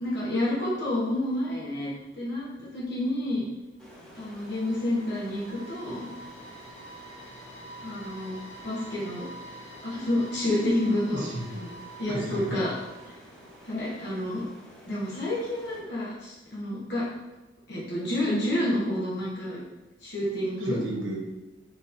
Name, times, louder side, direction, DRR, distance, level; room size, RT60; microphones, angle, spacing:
voice 1, 0.0-3.4 4.1-6.0 7.8-8.4 8.6-9.3 9.8-11.2 12.0-12.7 13.6-14.4 14.8-17.0 17.7-19.6 20.0-20.8, left 1 dB, 60° left, -8 dB, 1.2 m, -29 dB
sound 1, 3.8-13.8, right 2 dB, 80° left, 1.1 m, -47 dB
sound 2, 3.8-15.8, equal, 5° left, 1.4 m, -50 dB
voice 2, 11.1-11.7 12.1-12.8 20.6-21.2, right 1 dB, 70° right, -2 dB, 1.0 m, -34 dB
4.6 x 4.1 x 2.7 m, 1.0 s
head